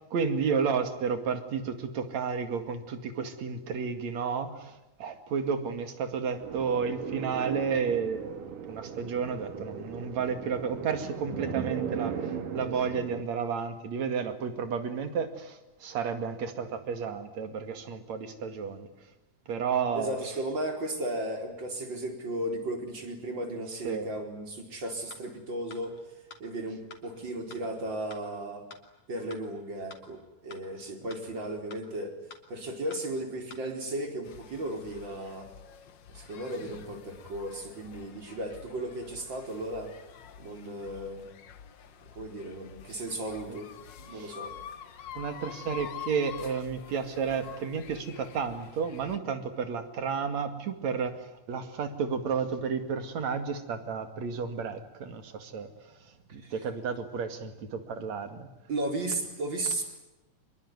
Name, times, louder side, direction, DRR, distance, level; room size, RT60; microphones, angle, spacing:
voice 1, 0.0-8.4 8.7-18.9 19.5-20.2 23.7-24.1 30.8-30.9 43.5-43.6 44.1-44.3 45.1-55.7 56.3-58.5, right 6 dB, 60° right, 9 dB, 3.4 m, -32 dB
sound 1, 6.4-13.2, right 7 dB, 75° right, 4.0 m, -37 dB
voice 2, 19.9-26.0 26.4-28.7 29.1-32.2 32.5-35.5 36.1-39.9 40.4-41.2 42.1-43.7 44.0-44.6 56.4-56.5 58.7-59.8, right 1 dB, 35° right, 4 dB, 4.9 m, -35 dB
sound 2, 25.1-25.2 25.7-25.8 26.3-26.4 26.9-27.0 27.5-27.6 28.1-28.2 28.7-28.8 29.3-29.4 29.9-30.0 30.5-30.6 31.1-31.2 31.7-31.8 32.3-32.4 32.9-33.0 33.5-33.6, left 6 dB, 55° left, 4.1 m, -47 dB
sound 3, 34.2-49.2, left 9 dB, 70° left, 1.0 m, -47 dB
25.5 x 22.5 x 9.7 m, 0.99 s
omnidirectional pair, 3.8 m